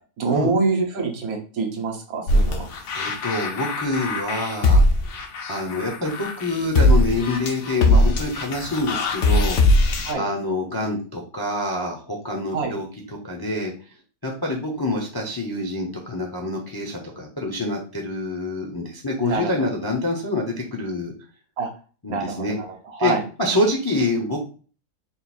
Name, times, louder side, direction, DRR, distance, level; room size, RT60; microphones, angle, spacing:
voice 1, 0.2-2.6 10.0-10.2 12.5-12.7 19.2-19.7 21.6-21.7 22.1-23.2, right 4 dB, 75° right, 3 dB, 1.3 m, -25 dB
sound 1, 2.3-10.1, left 1 dB, 60° left, 0.9 m, -20 dB
voice 2, 2.9-4.8 5.5-9.6 10.1-13.7 14.2-21.1 22.0-22.6 23.0-23.1 23.4-24.4, left 2 dB, 25° left, 0 dB, 0.5 m, -26 dB
3.8 x 2.4 x 4.3 m, 0.38 s
omnidirectional pair, 1.6 m